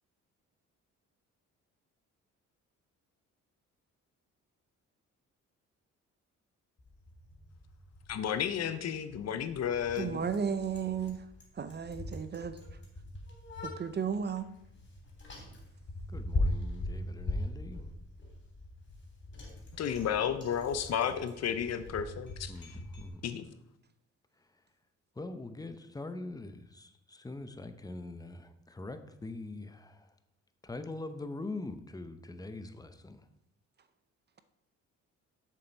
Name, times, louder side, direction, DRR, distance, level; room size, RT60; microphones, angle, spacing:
Bicycle, 6.8-23.1, left 1 dB, 40° left, 3.3 m, -40 dB
voice 1, 8.1-10.2 19.8-22.5 23.2-23.4, left 8 dB, 60° left, 11 dB, 0.7 m, -32 dB
voice 2, 10.0-11.2 11.6-12.6 13.6-14.5, right 7 dB, 35° right, 12 dB, 0.6 m, -34 dB
voice 3, 16.1-17.8 22.5-23.2 25.2-30.1 30.6-33.2, left 2 dB, 10° left, 10 dB, 0.7 m, -43 dB
7.5 x 6.7 x 4.4 m, 0.80 s
cardioid pair, 90°, 30 cm